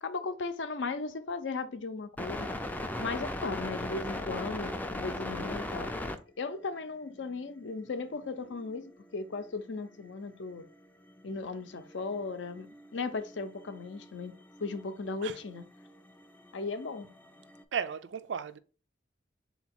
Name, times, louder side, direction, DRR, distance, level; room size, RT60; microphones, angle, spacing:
voice 1, 0.0-2.5 3.0-5.9 6.4-10.7 11.2-15.7 16.5-17.1, left 4 dB, 75° left, 0.6 m, -37 dB
sound 1, 2.2-6.2 7.2-7.4 8.1-10.1 10.5-17.6, left 1 dB, 10° left, 0.3 m, -40 dB
voice 2, 17.7-18.6, right 7 dB, 70° right, 0.4 m, -34 dB
3.8 x 2.8 x 4.3 m
head